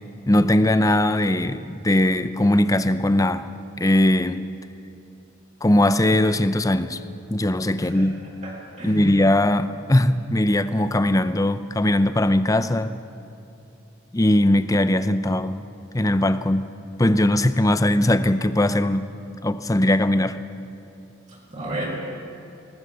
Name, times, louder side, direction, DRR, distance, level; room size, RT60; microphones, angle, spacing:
voice 1, 0.3-3.5 3.8-4.4 5.6-7.0 7.3-8.2 8.8-12.9 14.1-15.6 15.9-16.7 17.0-19.1 19.4-20.4, left 1 dB, 15° left, 12 dB, 0.6 m, -20 dB
voice 2, 8.4-9.1 21.3-21.9, right 1 dB, 35° right, -4 dB, 4.7 m, -33 dB
21.0 x 18.0 x 6.9 m, 2.8 s
head